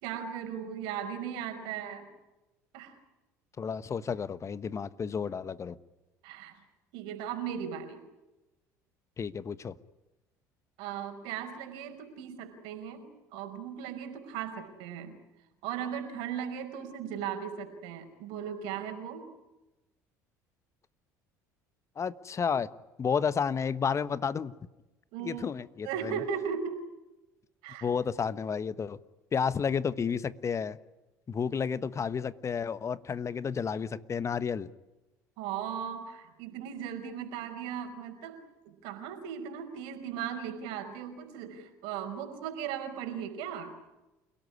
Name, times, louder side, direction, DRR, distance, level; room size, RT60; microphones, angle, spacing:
voice 1, 0.0-2.1 2.7-3.0 6.2-6.6 6.9-8.0 10.8-15.2 15.6-19.3 25.1-25.4 25.9-26.8 27.6-27.9 35.4-43.8, right 8 dB, 70° right, 7 dB, 5.1 m, -37 dB
voice 2, 3.6-5.8 9.2-9.7 22.0-22.7 23.0-24.5 25.2-26.2 27.8-29.0 29.3-30.8 31.3-34.7, left 6 dB, 35° left, 16 dB, 1.3 m, -31 dB
29.0 x 17.5 x 9.8 m, 1.0 s
hypercardioid pair, 65°, 9 cm